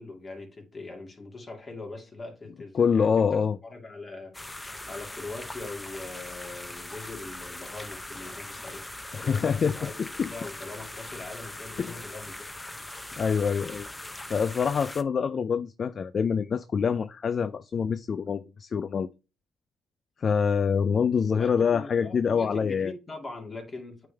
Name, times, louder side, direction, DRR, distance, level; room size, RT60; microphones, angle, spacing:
voice 1, 0.0-8.9 9.2-10.0 10.3-12.4 21.3-24.1, left 3 dB, 30° left, 2.4 m, -41 dB
voice 2, 2.7-3.6 9.2-9.9 10.2-10.3 11.8-12.0 13.2-13.9 14.3-19.1 20.2-22.9, left 6 dB, 45° left, 0.4 m, -25 dB
sound 1, 4.3-15.0, left 1 dB, 15° left, 0.7 m, -41 dB
9.0 x 3.4 x 3.4 m
cardioid pair, 90°, 0 cm